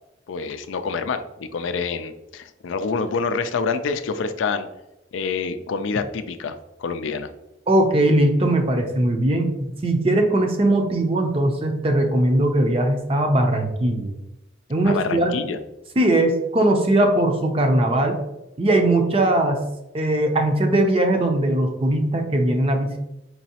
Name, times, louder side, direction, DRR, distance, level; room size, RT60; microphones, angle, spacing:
voice 1, 0.3-4.7 5.1-7.3 14.8-15.6, left 5 dB, 90° left, 10 dB, 0.4 m, -27 dB
voice 2, 7.7-14.1 14.7-15.4 16.0-18.2 18.6-19.6 19.9-23.0, right 1 dB, 30° right, 4 dB, 0.5 m, -20 dB
4.6 x 3.0 x 2.8 m, 0.92 s
head